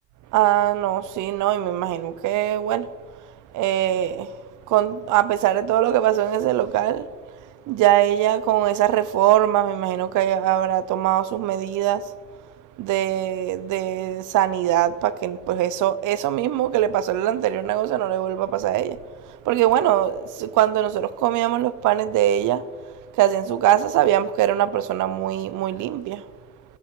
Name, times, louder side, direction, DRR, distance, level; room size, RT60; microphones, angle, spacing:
voice 1, 0.3-2.9 3.5-4.4 4.7-7.1 7.6-12.1 12.8-19.0 19.2-22.7 23.1-26.3, right 12 dB, 85° right, 0.5 m, -22 dB
17.0 x 6.7 x 3.6 m
cardioid pair, 90°, 30 cm